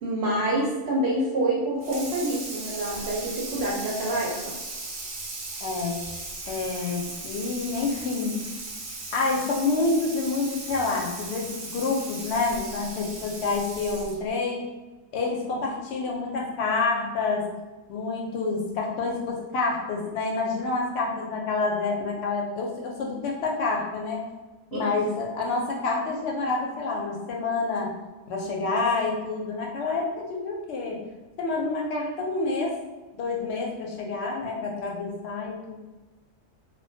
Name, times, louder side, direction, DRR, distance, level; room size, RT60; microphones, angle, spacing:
voice 1, 0.0-4.5 18.3-18.4 24.7-24.8, right 1 dB, 65° right, -4 dB, 0.7 m, -27 dB
Water tap faucet / Sink (filling or washing), 1.8-14.3, right 2 dB, 80° right, 0.3 m, -37 dB
voice 2, 5.6-6.0 6.5-8.4 9.1-14.6 15.1-17.4 17.9-24.2 24.7-27.9 28.3-31.0 31.4-32.8 33.2-35.8, left 3 dB, 65° left, -1 dB, 0.8 m, -28 dB
2.2 x 2.2 x 2.5 m, 1.2 s
omnidirectional pair, 1.3 m